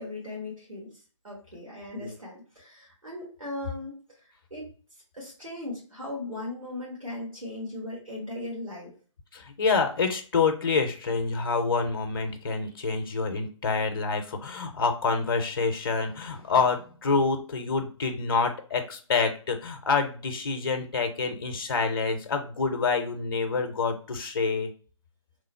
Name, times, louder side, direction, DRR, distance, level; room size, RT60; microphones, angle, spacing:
voice 1, 0.0-4.7 5.1-8.9, left 2 dB, 80° right, -4 dB, 1.5 m, -38 dB
voice 2, 9.3-24.7, left 4 dB, 45° left, 6 dB, 0.5 m, -27 dB
3.0 x 2.0 x 4.1 m, 0.39 s
figure-of-eight pair, 150°, 17 cm